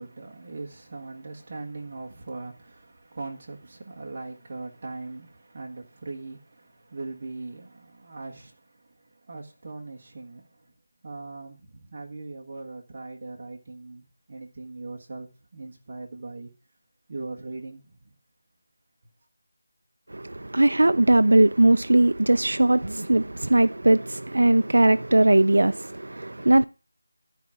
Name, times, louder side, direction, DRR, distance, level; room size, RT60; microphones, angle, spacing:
voice 1, 0.0-10.7 11.0-16.5 17.1-18.1, right 3 dB, 25° right, 1.5 m, -40 dB
voice 2, 20.1-26.7, right 1 dB, 75° right, 0.4 m, -19 dB
11.5 x 5.0 x 7.2 m
figure-of-eight pair, 175°, 0 cm